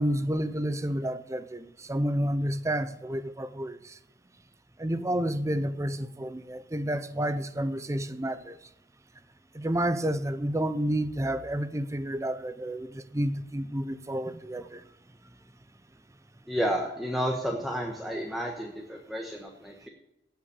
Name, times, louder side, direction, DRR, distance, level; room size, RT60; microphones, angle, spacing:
voice 1, 0.0-4.0 4.8-8.6 9.5-14.8, right 1 dB, 15° right, 0.6 m, -30 dB
voice 2, 16.5-19.9, equal, ahead, 1.2 m, -31 dB
16.5 x 5.9 x 6.6 m
head